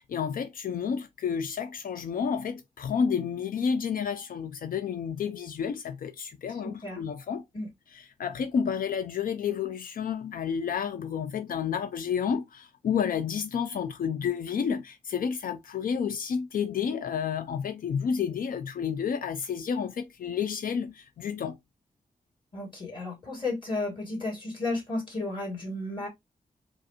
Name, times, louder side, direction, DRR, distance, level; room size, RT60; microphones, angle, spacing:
voice 1, 0.0-7.4 7.9-21.6, left 7 dB, 85° left, 0.4 m, -30 dB
voice 2, 6.5-7.0 7.5-7.7 22.5-26.1, left 2 dB, 35° left, 2.3 m, -33 dB
4.9 x 2.4 x 2.8 m
wide cardioid pair, 130°, 14 cm